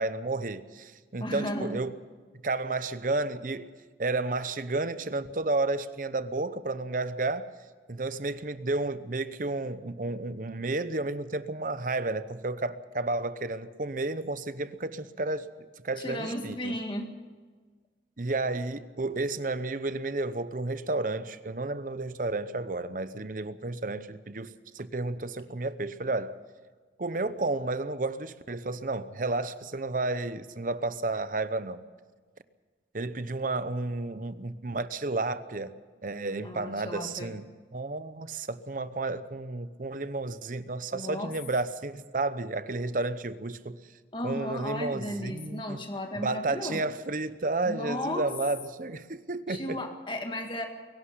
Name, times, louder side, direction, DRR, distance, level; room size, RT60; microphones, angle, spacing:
voice 1, 0.0-1.9 2.4-3.7 4.0-7.5 7.9-15.5 15.8-16.7 18.2-26.4 27.0-31.8 32.9-35.7 36.0-37.4 37.7-43.8 44.2-45.8 46.2-49.8, right 2 dB, 50° right, 0.8 m, -32 dB
voice 2, 1.2-1.8 16.0-17.1 36.4-37.3 40.9-41.3 44.1-46.8 47.7-48.3 49.5-50.7, left 1 dB, 25° left, 1.9 m, -34 dB
22.5 x 12.0 x 9.7 m
head